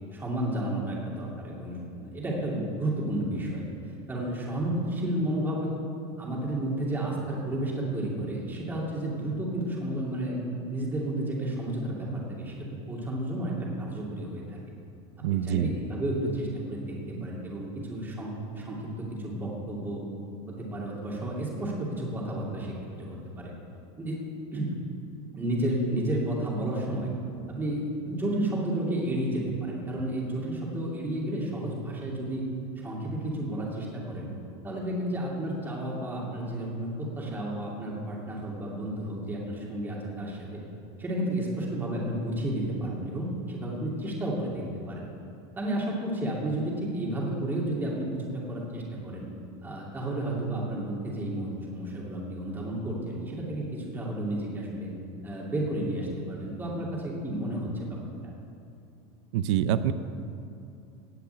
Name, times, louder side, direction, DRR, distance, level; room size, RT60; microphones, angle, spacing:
voice 1, 0.1-3.6 4.1-5.7 6.2-10.4 10.7-14.6 15.3-20.0 20.5-23.5 24.0-24.2 24.5-24.7 25.3-27.1 27.5-32.4 32.8-34.3 34.6-40.5 41.0-45.1 45.5-49.3 49.6-54.9 55.2-58.0, right 1 dB, 15° right, -3 dB, 2.5 m, -32 dB
voice 2, 15.2-15.8 17.2-17.3 59.3-59.9, right 10 dB, 75° right, 13 dB, 0.7 m, -26 dB
17.0 x 5.8 x 9.0 m, 2.6 s
supercardioid pair, 165°, 15 cm